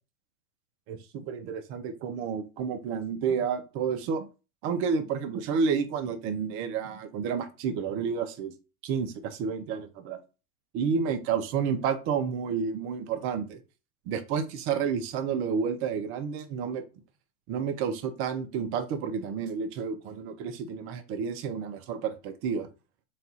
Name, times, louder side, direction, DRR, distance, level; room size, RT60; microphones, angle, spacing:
voice 1, 0.9-4.3 4.6-8.5 8.8-10.2 10.7-13.6 14.1-16.8 17.5-22.7, right 6 dB, 30° right, 0.5 m, -30 dB
4.2 x 2.3 x 4.1 m
hypercardioid pair, 125°, 48 cm